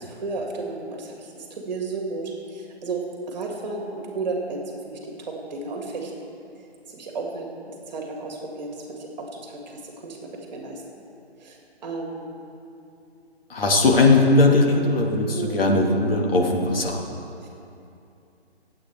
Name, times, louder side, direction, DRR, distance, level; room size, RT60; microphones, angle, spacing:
voice 1, 0.0-3.0 3.3-6.1 6.9-10.8 11.4-12.3 15.3-15.7 17.4-17.5, right 3 dB, 40° right, 0 dB, 2.3 m, -33 dB
voice 2, 13.5-17.0, left 2 dB, 60° left, 0 dB, 2.1 m, -19 dB
24.5 x 8.5 x 3.6 m, 2.7 s
figure-of-eight pair, 145°, 33 cm